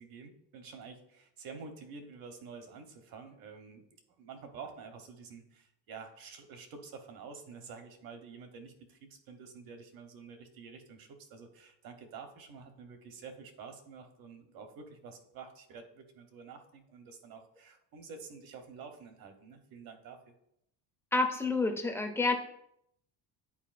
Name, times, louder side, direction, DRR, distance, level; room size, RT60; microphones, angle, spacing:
voice 1, 0.0-3.8 4.2-20.2, right 5 dB, 55° right, 6 dB, 1.0 m, -49 dB
voice 2, 21.1-22.3, left 3 dB, 5° left, 3 dB, 0.5 m, -29 dB
9.9 x 4.5 x 2.5 m, 0.76 s
cardioid pair, 170°, 42 cm